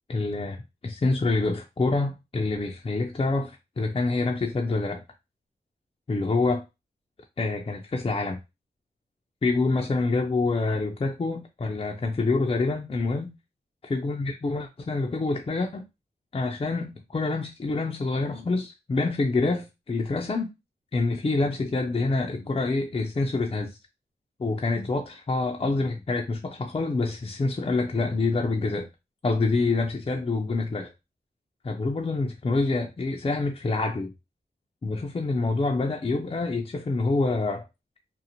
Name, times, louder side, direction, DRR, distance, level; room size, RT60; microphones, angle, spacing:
voice 1, 0.1-5.0 6.1-6.6 7.4-8.4 9.4-13.3 13.9-15.8 16.3-20.5 20.9-23.8 24.4-28.9 29.2-30.9 31.6-34.1 34.8-37.7, left 3 dB, 30° left, 0.4 m, -26 dB
2.6 x 2.1 x 2.8 m
cardioid pair, 45°, 18 cm